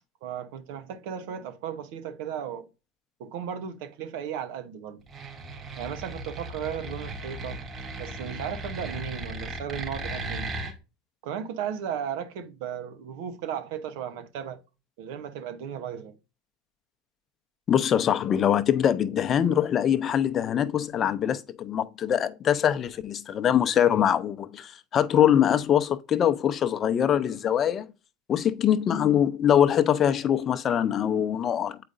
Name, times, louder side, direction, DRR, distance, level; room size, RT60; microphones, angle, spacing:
voice 1, 0.2-2.7 3.2-5.0 5.8-7.6 8.0-10.5 11.2-14.6 15.0-16.2, right 8 dB, 65° right, 0.9 m, -35 dB
sound 1, 5.1-10.7, right 2 dB, 35° right, 2.9 m, -36 dB
voice 2, 17.7-27.9 28.3-31.8, left 9 dB, 40° left, 0.6 m, -23 dB
7.7 x 4.9 x 2.5 m
hypercardioid pair, 85°, 0 cm